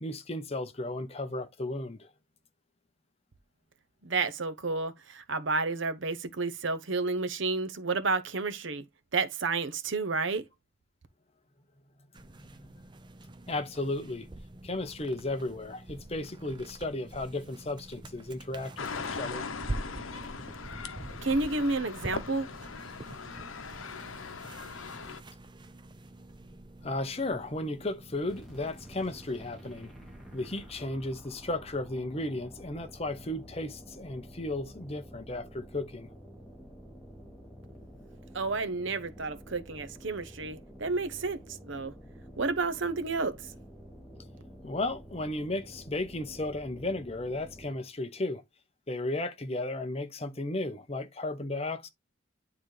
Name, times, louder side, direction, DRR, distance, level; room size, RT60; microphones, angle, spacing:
voice 1, 0.0-2.1 13.5-14.3 14.6-19.4 26.8-29.9 30.3-36.1 44.6-48.4 48.9-51.9, left 2 dB, 30° left, 0.8 m, -34 dB
voice 2, 4.0-8.8 9.1-10.4 21.2-22.5 38.3-41.4 41.7-41.9 42.4-43.4, right 3 dB, 70° right, 0.9 m, -30 dB
sound 1, 12.1-30.7, right 1 dB, 20° right, 0.6 m, -46 dB
sound 2, 18.8-25.2, left 5 dB, 85° left, 0.8 m, -40 dB
sound 3, 28.3-47.9, equal, ahead, 2.6 m, -50 dB
9.5 x 4.0 x 3.3 m
head